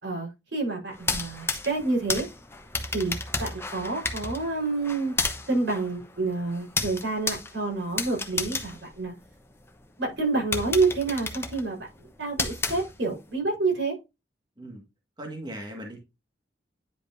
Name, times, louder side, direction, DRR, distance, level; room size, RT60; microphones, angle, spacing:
voice 1, 0.0-2.3 2.9-5.1 5.5-9.1 10.0-11.9 12.2-13.9, right 3 dB, 85° right, 4.3 m, -28 dB
sound 1, 0.9-9.7 10.1-10.2 10.5-13.3, left 3 dB, 15° left, 0.9 m, -33 dB
voice 2, 15.2-16.0, right 1 dB, 25° right, 1.7 m, -38 dB
10.0 x 5.1 x 2.6 m
head